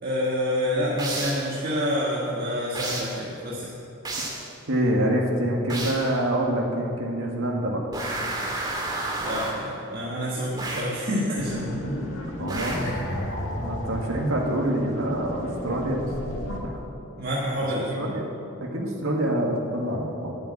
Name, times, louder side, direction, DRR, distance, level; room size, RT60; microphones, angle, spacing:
voice 1, 0.0-3.6 9.2-11.8 17.2-18.0, equal, 50° right, -6 dB, 1.7 m, -27 dB
sound 1, 1.0-1.5 2.7-3.2 4.0-4.5 5.7-6.1 7.9-9.7 10.6-11.0 12.5-13.0, right 2 dB, 20° right, 2.0 m, -31 dB
voice 2, 4.7-7.8 12.4-12.9 13.5-16.1 16.6-16.8 17.7-18.2 18.6-20.3, right 1 dB, 80° right, -1 dB, 1.9 m, -26 dB
sound 2, 11.4-16.6, left 1 dB, 75° left, 2.1 m, -33 dB
11.5 x 8.8 x 8.6 m, 2.8 s
head